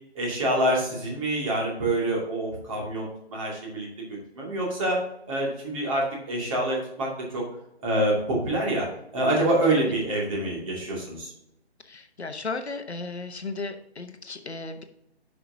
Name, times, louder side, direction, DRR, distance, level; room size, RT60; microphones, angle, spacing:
voice 1, 0.1-3.9 4.4-5.0 5.3-7.1 7.3-7.4 7.8-8.9 9.1-11.3, right 1 dB, 30° right, -3 dB, 2.5 m, -26 dB
voice 2, 11.8-14.8, left 3 dB, 75° left, 7 dB, 1.1 m, -35 dB
9.5 x 5.9 x 2.8 m, 0.80 s
figure-of-eight pair, 145°, 33 cm